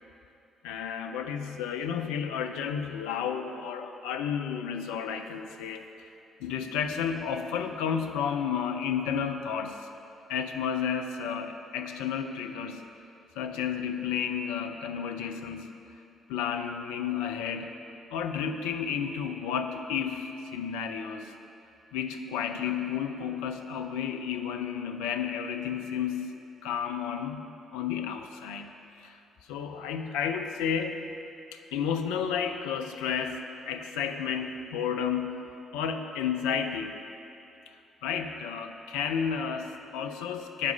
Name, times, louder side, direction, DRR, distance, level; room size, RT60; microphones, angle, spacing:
voice 1, 0.6-5.8 6.4-9.9 10.3-12.8 13.4-15.7 16.3-17.7 18.1-21.3 21.9-27.4 27.7-29.2 29.5-31.0 31.5-37.0 38.0-40.7, left 7 dB, 70° left, 6 dB, 0.3 m, -32 dB
7.2 x 4.7 x 5.0 m, 2.7 s
figure-of-eight pair, 45°, 0 cm